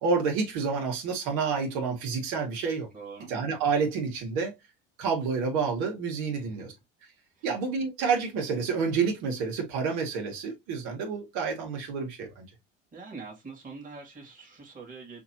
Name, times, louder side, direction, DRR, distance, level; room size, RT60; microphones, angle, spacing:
voice 1, 0.0-2.9 3.3-4.5 5.0-6.7 7.4-12.5, right 5 dB, 70° right, 2.0 m, -29 dB
voice 2, 2.9-3.3 6.3-6.7 7.4-7.5 12.9-15.2, right 4 dB, 25° right, 2.2 m, -44 dB
5.7 x 2.9 x 2.8 m
supercardioid pair, 115°, 30 cm